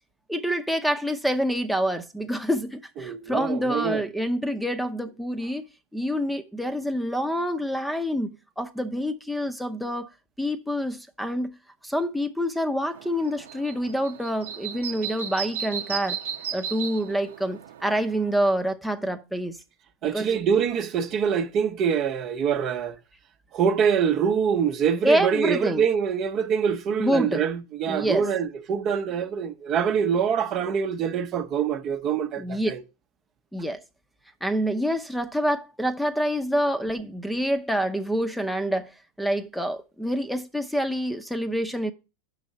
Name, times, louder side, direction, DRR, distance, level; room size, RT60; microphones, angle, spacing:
voice 1, 0.3-5.6 5.9-10.1 10.4-11.6 11.8-16.2 16.5-19.6 20.1-20.4 25.0-25.8 27.0-27.5 27.9-28.3 32.4-32.7 33.5-33.8 34.4-38.9 39.2-41.9, equal, ahead, 0.7 m, -27 dB
voice 2, 3.0-4.0 20.0-23.0 23.5-32.8, right 7 dB, 45° right, 0.8 m, -25 dB
sound 1, 12.9-18.5, right 8 dB, 80° right, 0.8 m, -35 dB
6.1 x 5.0 x 6.6 m
hypercardioid pair, 100°, 0 cm